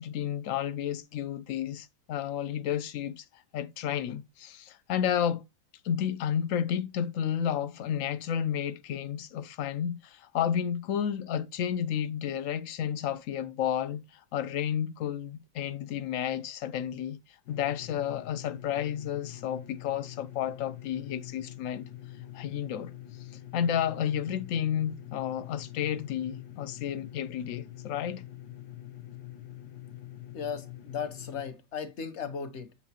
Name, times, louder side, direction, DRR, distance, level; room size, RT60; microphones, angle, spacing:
voice 1, 0.0-5.4 5.8-21.9 22.3-28.2, left 9 dB, 90° left, 0.7 m, -32 dB
sound 1, 17.5-31.5, left 13 dB, 65° left, 1.2 m, -45 dB
voice 2, 30.3-32.8, left 6 dB, 45° left, 1.1 m, -36 dB
7.2 x 7.1 x 2.8 m
omnidirectional pair, 2.1 m